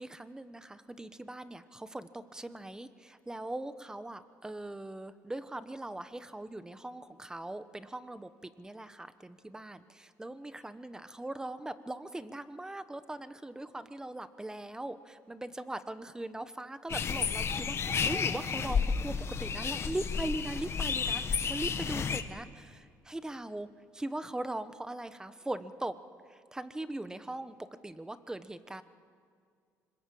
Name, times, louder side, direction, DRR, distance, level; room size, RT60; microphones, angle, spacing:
voice 1, 0.0-25.9 26.3-28.8, right 1 dB, 10° right, 12 dB, 1.2 m, -40 dB
sound 1, 16.9-22.2, left 6 dB, 40° left, 1.5 m, -32 dB
25.0 x 21.0 x 8.7 m, 2.2 s
cardioid pair, 100°, 7 cm